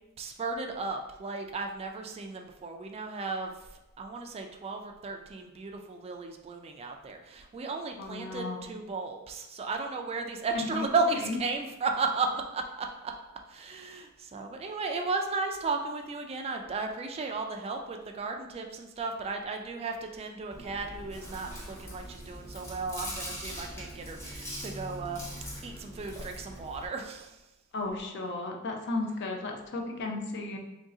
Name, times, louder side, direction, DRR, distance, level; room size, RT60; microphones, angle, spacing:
voice 1, 0.2-3.7 4.0-13.1 13.5-25.2 25.6-27.4, right 3 dB, 30° right, 4 dB, 0.3 m, -34 dB
voice 2, 8.0-8.7 10.6-10.9 11.2-11.4 27.7-30.6, left 2 dB, 55° left, 1 dB, 0.6 m, -34 dB
Chewing mastication, 20.5-26.9, equal, 15° left, 0.8 m, -41 dB
3.1 x 2.7 x 3.6 m, 0.98 s
head